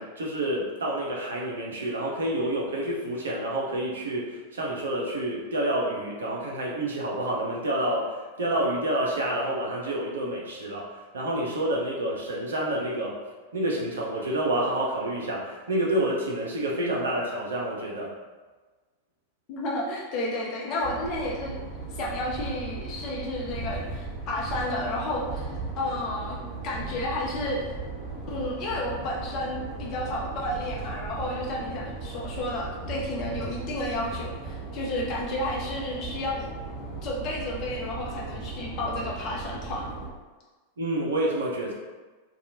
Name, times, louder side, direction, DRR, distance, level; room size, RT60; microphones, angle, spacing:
voice 1, 0.0-13.2 13.5-18.1 40.8-41.7, right 1 dB, 70° right, -3 dB, 0.6 m, -28 dB
voice 2, 19.5-21.6 21.9-27.6 28.3-36.5 37.0-39.9, left 1 dB, 40° left, -3 dB, 0.7 m, -31 dB
sound 1, 20.8-40.1, right 3 dB, 25° right, 1.1 m, -37 dB
2.8 x 2.3 x 2.7 m, 1.3 s
figure-of-eight pair, 90°, 0 cm